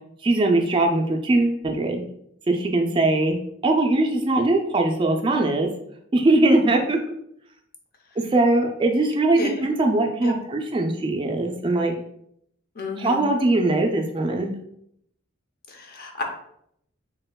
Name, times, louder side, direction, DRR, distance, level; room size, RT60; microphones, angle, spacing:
voice 1, 0.2-2.0 2.5-3.4 3.6-5.7 6.1-7.0 8.2-11.9 13.0-14.5, right 2 dB, 25° right, 3 dB, 0.3 m, -21 dB
voice 2, 9.4-9.7 10.2-10.4 12.7-13.2 15.7-16.2, left 3 dB, 50° left, 2 dB, 0.7 m, -31 dB
4.3 x 3.5 x 2.2 m, 0.72 s
head